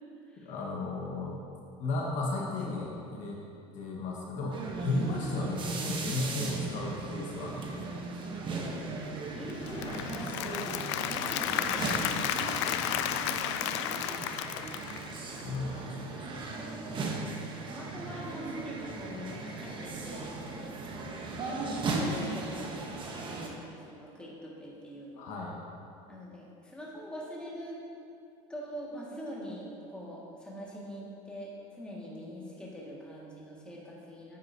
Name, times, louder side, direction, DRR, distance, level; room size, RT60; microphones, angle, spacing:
voice 1, 0.4-1.4 1.8-3.4 3.7-4.6 4.8-7.6 12.7-14.0 15.4-16.5 25.2-25.6, left 2 dB, 60° left, -2 dB, 1.4 m, -35 dB
sound 1, 4.5-23.5, right 3 dB, 35° right, 1.1 m, -37 dB
voice 2, 8.1-12.4 15.7-15.9 16.9-20.4 20.8-25.3 26.1-27.8 28.5-34.4, equal, 5° left, -5 dB, 1.9 m, -44 dB
Applause / Crowd, 9.5-15.6, left 11 dB, 90° left, 0.4 m, -33 dB
9.9 x 8.2 x 2.8 m, 2.6 s
supercardioid pair, 115°, 14 cm